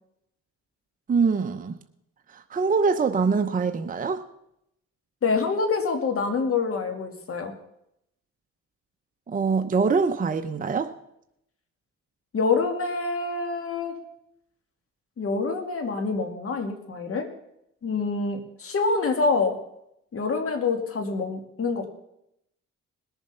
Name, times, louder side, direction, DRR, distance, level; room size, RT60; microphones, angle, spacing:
voice 1, 1.1-1.8 2.3-4.2 9.3-10.9, right 5 dB, 25° right, 7 dB, 0.8 m, -24 dB
voice 2, 5.2-7.5 12.3-13.9 15.2-17.3 17.8-19.6 20.1-21.9, left 4 dB, 45° left, 4 dB, 2.4 m, -26 dB
20.5 x 7.2 x 5.6 m, 0.80 s
cardioid pair, 90°, 30 cm